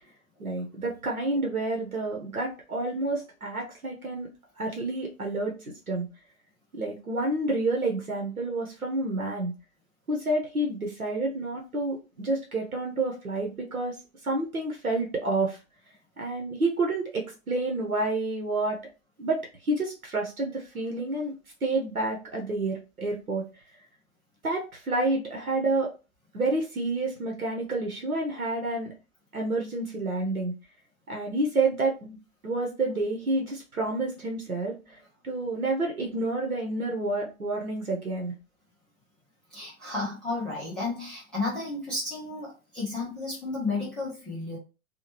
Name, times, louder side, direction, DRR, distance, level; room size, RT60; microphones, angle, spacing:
voice 1, 0.4-4.3 4.6-5.5 5.9-6.1 6.7-9.5 10.1-14.0 14.2-15.6 16.2-18.8 19.2-21.3 21.6-23.4 24.4-25.9 26.3-28.9 29.3-30.5 31.1-32.2 32.4-38.3, right 2 dB, 80° right, 0 dB, 0.9 m, -29 dB
voice 2, 39.5-44.6, left 3 dB, ahead, -12 dB, 0.4 m, -32 dB
2.8 x 2.2 x 3.0 m, 0.31 s
figure-of-eight pair, 110°, 42 cm